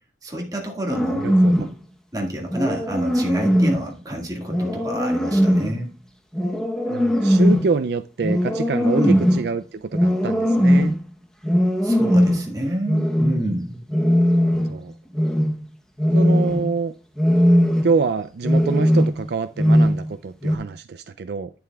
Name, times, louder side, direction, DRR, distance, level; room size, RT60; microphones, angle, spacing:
voice 1, 0.2-1.3 1.6-1.7 2.1-5.9 8.9-9.2 11.8-13.8, right 1 dB, 20° right, 1.8 m, -27 dB
sound 1, 0.9-1.7 2.5-3.8 4.5-5.8 6.3-7.7 8.2-9.5 9.9-11.0 11.4-12.5 12.9-13.4 13.9-14.8 15.1-15.6 16.0-16.7 17.2-18.0 18.4-19.3 19.6-20.1 20.4-20.6, equal, 5° left, 0.9 m, -19 dB
voice 2, 1.1-1.5 6.9-11.0 14.4-14.9 16.1-16.9 17.8-21.5, right 4 dB, 65° right, 0.4 m, -26 dB
11.0 x 8.6 x 2.3 m
head